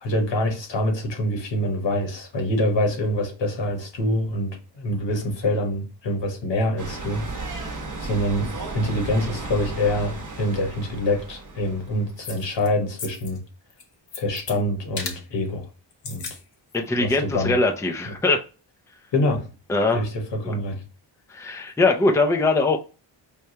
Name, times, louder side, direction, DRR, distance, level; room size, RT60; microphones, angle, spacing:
voice 1, 0.0-13.4 14.1-15.7 16.0-16.3 17.0-17.6 18.1-18.2 19.1-19.5 19.9-20.8, left 1 dB, 70° left, 1.2 m, -25 dB
sound 1, 6.8-12.2, right 3 dB, 40° right, 0.9 m, -34 dB
sound 2, 12.2-12.7 13.0-13.4 13.7-14.6 15.0-15.2 15.9-16.4 16.7-16.8, left 5 dB, 50° left, 0.7 m, -35 dB
voice 2, 16.7-18.4 19.7-20.0 20.4-20.6 21.3-22.8, left 3 dB, 5° left, 0.4 m, -21 dB
4.7 x 2.2 x 2.7 m
wide cardioid pair, 135°, 46 cm